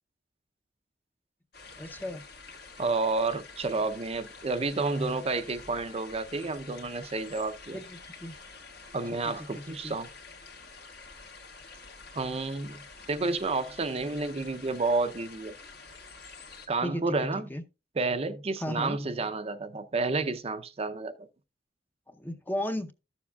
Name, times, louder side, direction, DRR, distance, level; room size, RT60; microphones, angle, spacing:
sound 1, 1.5-16.7, left 4 dB, 60° left, 1.7 m, -48 dB
voice 1, 1.8-2.2 7.7-8.3 9.5-9.9 16.8-17.1 17.5-17.6 18.6-19.0 22.1-22.9, left 1 dB, 10° left, 0.6 m, -35 dB
voice 2, 2.8-7.8 8.9-10.1 12.1-12.8 13.1-15.5 16.7-17.5 18.0-21.3, right 3 dB, 35° right, 0.5 m, -30 dB
13.0 x 7.1 x 2.3 m
head